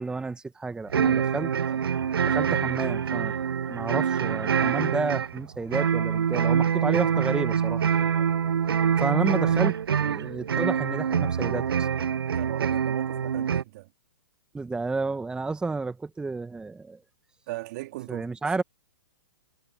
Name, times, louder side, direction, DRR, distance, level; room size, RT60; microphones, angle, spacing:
voice 1, 0.0-1.5 2.2-3.3 3.7-7.9 8.1-8.2 9.0-11.9 14.5-17.0 18.1-18.6, right 3 dB, 5° right, 1.3 m, -31 dB
sound 1, 0.9-13.6, right 7 dB, 85° right, 0.4 m, -25 dB
voice 2, 12.3-13.9 17.5-18.3, right 19 dB, 45° right, 3.3 m, -38 dB
hypercardioid pair, 125°, 12 cm